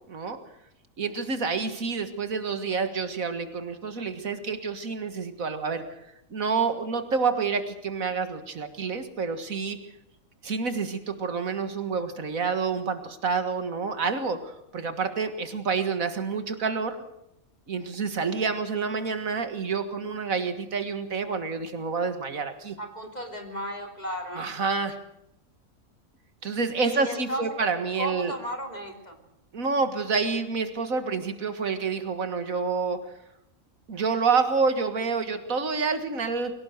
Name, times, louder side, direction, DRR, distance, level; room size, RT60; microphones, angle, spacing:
voice 1, 0.1-0.4 1.0-5.8 6.3-9.8 10.4-17.0 17.7-22.8 24.4-25.0 26.4-28.3 29.5-33.0 33.9-36.5, right 5 dB, 75° right, 8 dB, 2.1 m, -28 dB
voice 2, 22.8-24.5 26.8-27.6 27.9-29.2, equal, 30° left, 3 dB, 3.3 m, -34 dB
22.5 x 18.0 x 6.6 m, 0.80 s
omnidirectional pair, 1.5 m